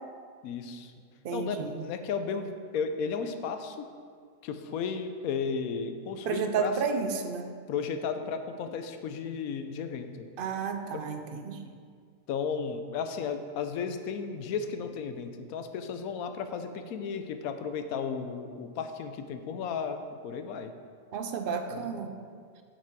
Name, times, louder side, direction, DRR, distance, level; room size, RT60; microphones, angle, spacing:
voice 1, 0.4-0.9 1.3-3.9 4.4-6.7 7.7-10.3 10.9-11.0 12.3-20.7 21.7-21.9, left 6 dB, 90° left, 8 dB, 1.1 m, -34 dB
voice 2, 1.2-1.8 6.2-7.5 10.4-11.6 21.1-22.1, right 5 dB, 70° right, 6 dB, 0.5 m, -31 dB
7.2 x 5.9 x 4.6 m, 2.1 s
omnidirectional pair, 1.5 m